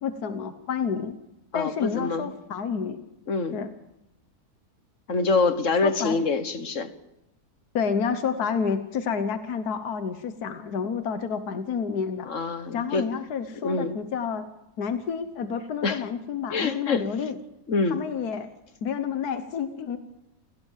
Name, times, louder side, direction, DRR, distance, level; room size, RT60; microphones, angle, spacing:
voice 1, 0.0-1.2 1.5-3.0 3.5-3.7 5.8-6.2 7.7-12.3 12.7-14.5 14.8-17.4 17.9-18.5 18.8-20.0, left 6 dB, 80° left, 9 dB, 1.7 m, -29 dB
voice 2, 1.5-2.3 3.3-3.6 5.1-6.9 12.3-13.0 13.6-13.9 15.8-16.0 16.5-17.3 17.7-18.0, left 4 dB, 55° left, 10 dB, 1.7 m, -25 dB
28.5 x 17.5 x 7.5 m, 0.90 s
omnidirectional pair, 1.6 m